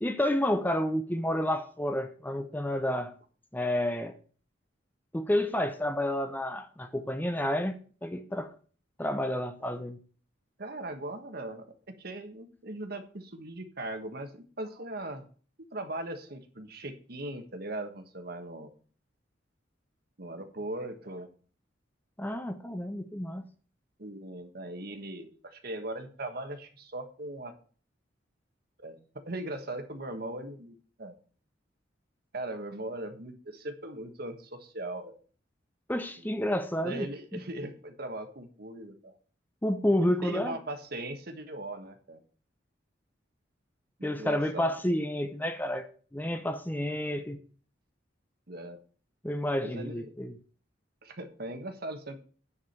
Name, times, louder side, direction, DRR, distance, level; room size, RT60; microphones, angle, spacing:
voice 1, 0.0-3.1 3.5-4.2 5.1-8.5 9.0-10.0 22.2-23.4 35.9-37.1 37.3-37.4 39.6-40.6 44.0-45.9 46.1-47.4 49.2-50.3, left 1 dB, 10° left, 0.7 m, -30 dB
voice 2, 10.6-11.7 12.0-15.2 15.6-18.7 20.2-21.3 24.0-27.5 28.8-31.2 32.3-35.2 36.2-36.3 36.8-39.2 40.0-42.2 44.0-44.8 48.5-48.8 49.6-50.1 51.0-52.2, right 1 dB, 55° right, 1.4 m, -39 dB
9.8 x 4.9 x 7.2 m
head